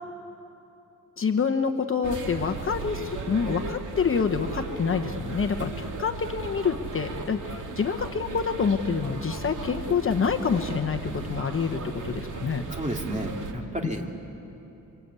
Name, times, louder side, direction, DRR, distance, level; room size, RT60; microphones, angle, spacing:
voice 1, 1.2-12.6, left 6 dB, 40° left, 4 dB, 1.1 m, -27 dB
sound 1, 2.0-13.5, right 4 dB, 65° right, 2.1 m, -36 dB
voice 2, 12.7-14.1, right 1 dB, 20° right, 2 dB, 2.5 m, -31 dB
25.5 x 25.0 x 8.4 m, 2.9 s
wide cardioid pair, 130°, 33 cm